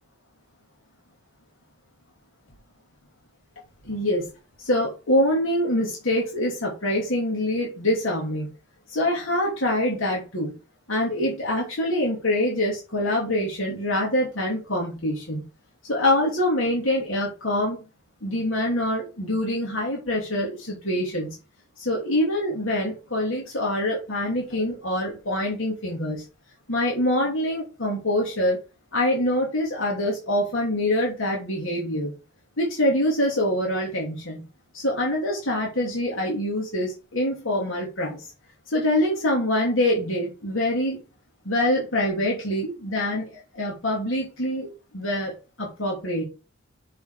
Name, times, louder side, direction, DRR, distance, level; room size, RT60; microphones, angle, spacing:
voice 1, 3.8-4.3 4.6-8.5 8.9-10.6 10.9-15.4 15.9-17.8 18.2-21.3 21.8-26.2 26.7-28.6 28.9-32.1 32.6-34.5 34.7-38.3 38.7-41.0 41.4-46.2, left 1 dB, 85° left, -3 dB, 3.0 m, -25 dB
6.9 x 5.9 x 5.1 m, 0.30 s
head